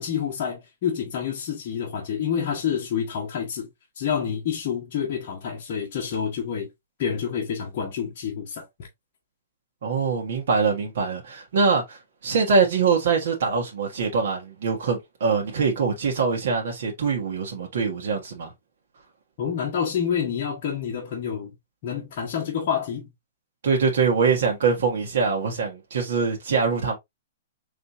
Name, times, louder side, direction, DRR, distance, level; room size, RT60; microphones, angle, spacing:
voice 1, 0.0-3.7 4.0-6.7 7.0-8.7 19.4-21.5 21.8-23.1, left 8 dB, 35° left, 1.1 m, -28 dB
voice 2, 9.8-18.5 23.6-26.9, right 5 dB, 60° right, 1.3 m, -23 dB
4.1 x 3.3 x 2.7 m
hypercardioid pair, 175°, 0 cm